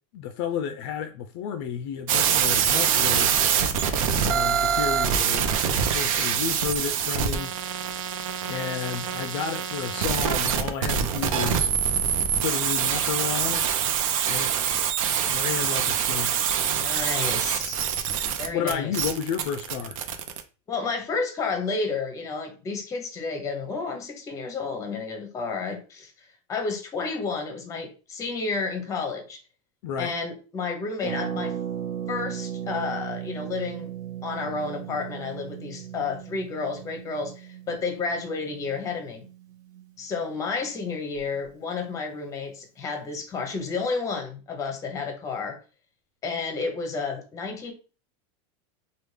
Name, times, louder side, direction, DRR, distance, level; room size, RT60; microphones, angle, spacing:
voice 1, 0.1-3.3 4.1-7.5 8.5-11.7 12.4-13.7 14.3-14.6 15.3-16.3 18.5-20.0 29.8-30.1, left 8 dB, 55° left, 0.4 m, -31 dB
sound 1, 2.1-20.4, right 8 dB, 80° right, 0.6 m, -25 dB
voice 2, 16.7-17.8 18.4-19.0 20.7-29.4 30.0-31.6 32.1-33.9 34.2-39.3 40.0-45.6 46.2-47.7, left 4 dB, 20° left, 0.7 m, -31 dB
Harp, 31.0-40.6 40.9-41.0 41.2-41.5, right 9 dB, 20° right, 0.9 m, -37 dB
3.4 x 2.3 x 3.2 m
supercardioid pair, 155°, 17 cm